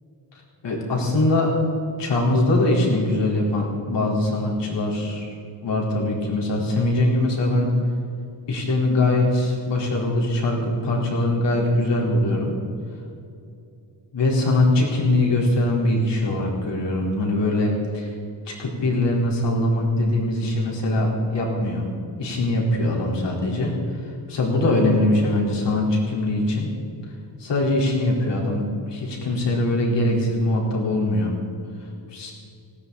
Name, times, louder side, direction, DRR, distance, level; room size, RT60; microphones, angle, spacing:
voice 1, 0.6-1.5 2.0-5.3 5.6-7.7 8.5-12.6 14.1-18.1 18.5-21.9 22.2-26.7 27.4-31.4 32.1-32.3, left 1 dB, 60° left, -3 dB, 4.3 m, -22 dB
19.0 x 17.5 x 4.2 m, 2.5 s
wide cardioid pair, 160°, 47 cm